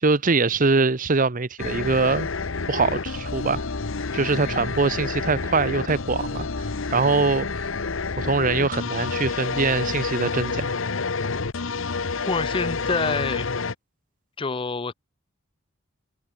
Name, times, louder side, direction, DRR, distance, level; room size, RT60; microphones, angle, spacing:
voice 1, 0.0-2.3 2.7-3.6 4.1-6.5 6.9-7.5 8.2-10.7, right 3 dB, 40° right, 0.9 m, -23 dB
sound 1, 1.6-13.7, left 4 dB, 75° left, 1.0 m, -29 dB
voice 2, 4.4-4.7 12.3-13.5 14.4-14.9, left 4 dB, 25° left, 0.5 m, -27 dB
open air
head